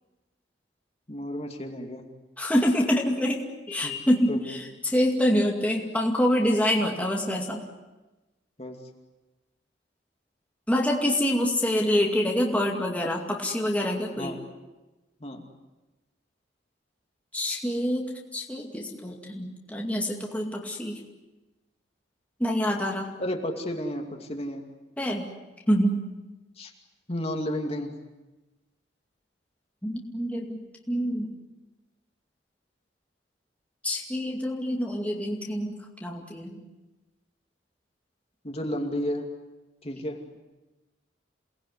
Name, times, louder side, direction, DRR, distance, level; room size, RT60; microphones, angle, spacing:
voice 1, 1.1-2.1 3.8-3.9 4.3-4.6 8.6-8.8 14.2-14.4 15.2-15.4 23.2-24.6 26.6-26.7 27.1-27.9 38.4-39.3 39.8-40.2, left 1 dB, 35° left, 3 dB, 2.5 m, -32 dB
voice 2, 2.4-3.4 3.7-7.6 10.7-14.3 17.3-21.0 22.4-23.1 25.0-25.2 25.7-26.0 29.8-30.6 30.9-31.3 33.8-36.6, equal, 10° left, -1 dB, 2.3 m, -26 dB
28.0 x 19.5 x 9.7 m, 1.1 s
head